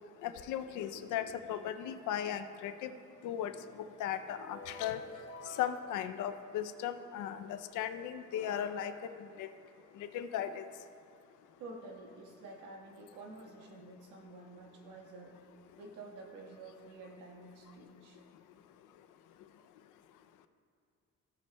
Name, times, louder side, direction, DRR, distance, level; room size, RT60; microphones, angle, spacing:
voice 1, 0.2-2.9 3.2-3.5 3.8-5.0 5.6-8.9 9.4-9.5 10.1-10.6, left 10 dB, 90° left, 9 dB, 0.6 m, -37 dB
voice 2, 0.9-1.3 11.6-15.4 15.8-18.2, right 2 dB, 90° right, 0 dB, 1.5 m, -50 dB
sound 1, 3.2-6.9 7.7-7.8 8.3-10.2, left 3 dB, 60° left, 1.9 m, -53 dB
16.0 x 8.5 x 2.3 m, 2.5 s
cardioid pair, 90°, 30 cm